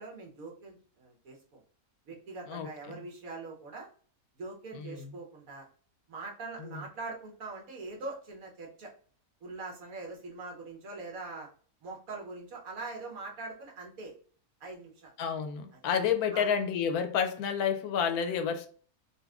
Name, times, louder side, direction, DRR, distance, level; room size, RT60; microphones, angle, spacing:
voice 1, 0.0-1.6 2.1-3.9 4.4-5.6 6.1-8.9 9.4-11.5 11.8-14.1 14.6-15.1 15.7-15.8 16.3-16.5, right 3 dB, 70° right, 1.4 m, -42 dB
voice 2, 15.2-18.7, left 7 dB, 80° left, 1.0 m, -29 dB
4.0 x 2.4 x 2.3 m
omnidirectional pair, 1.6 m